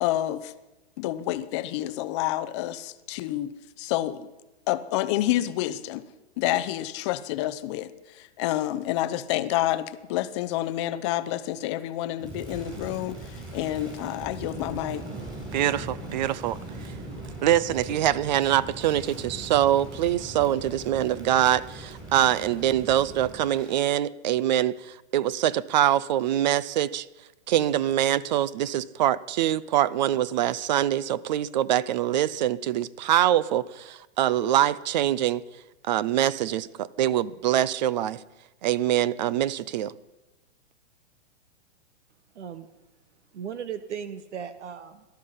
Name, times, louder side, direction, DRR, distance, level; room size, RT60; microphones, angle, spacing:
voice 1, 0.0-0.5 1.0-3.5 3.8-4.3 4.7-6.0 6.4-15.0, left 14 dB, 25° left, 0.6 m, -28 dB
Crackle, 12.2-23.8, right 2 dB, 10° right, 5.7 m, -40 dB
voice 2, 15.5-16.6 16.8-16.9 17.4-24.8 25.1-27.1 27.5-35.4 35.9-38.2 38.6-39.9, right 12 dB, 40° right, 0.5 m, -24 dB
voice 3, 42.3-42.7 43.3-45.1, right 8 dB, 80° right, 1.2 m, -36 dB
18.5 x 12.5 x 5.6 m
hypercardioid pair, 150°, 35 cm